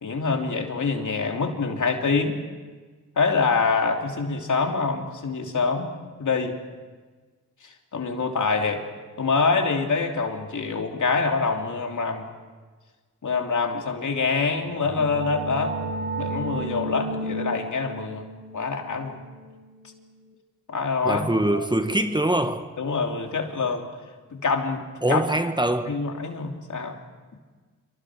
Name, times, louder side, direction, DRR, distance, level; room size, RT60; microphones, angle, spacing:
voice 1, 0.0-2.4 3.2-5.9 6.2-6.6 7.9-8.8 9.2-12.3 13.2-15.8 16.2-18.3 18.5-19.2 20.7-21.6 22.8-23.9 24.3-24.8 25.1-25.2 25.9-27.0, left 4 dB, 60° left, 3.0 m, -25 dB
sound 1, 14.5-20.1, right 2 dB, 35° right, 3.4 m, -33 dB
voice 2, 21.0-22.7 25.0-26.0, right 1 dB, 15° right, 1.5 m, -23 dB
27.0 x 24.5 x 4.9 m
cardioid pair, 55°, 33 cm